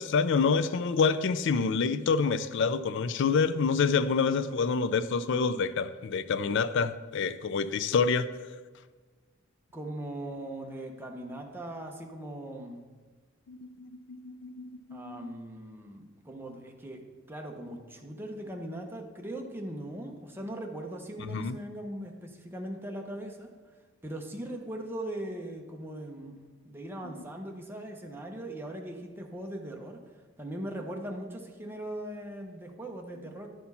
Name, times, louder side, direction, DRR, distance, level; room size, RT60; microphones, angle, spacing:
voice 1, 0.0-8.3 13.5-15.4 21.3-21.6 27.0-27.1, left 5 dB, 60° left, 14 dB, 0.4 m, -27 dB
voice 2, 9.7-12.9 14.9-17.0 17.3-23.5 24.0-30.0 30.4-33.5, right 1 dB, 10° right, 1 dB, 0.9 m, -40 dB
10.5 x 4.3 x 5.6 m, 1.4 s
head